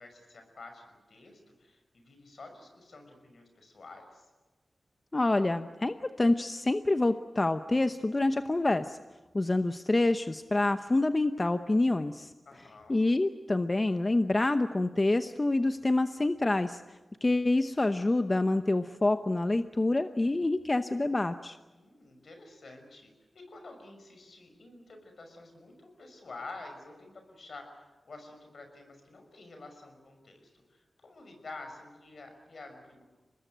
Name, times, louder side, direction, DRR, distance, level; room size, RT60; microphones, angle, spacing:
voice 1, 0.0-4.2 12.5-13.0 21.7-30.4 30.7-33.0, left 3 dB, 70° left, 5 dB, 5.9 m, -49 dB
voice 2, 5.1-9.0 9.3-12.3 12.9-16.8 17.2-21.6, left 2 dB, 35° left, 9 dB, 0.9 m, -27 dB
25.0 x 20.0 x 9.3 m, 1.2 s
cardioid pair, 55°, 0 cm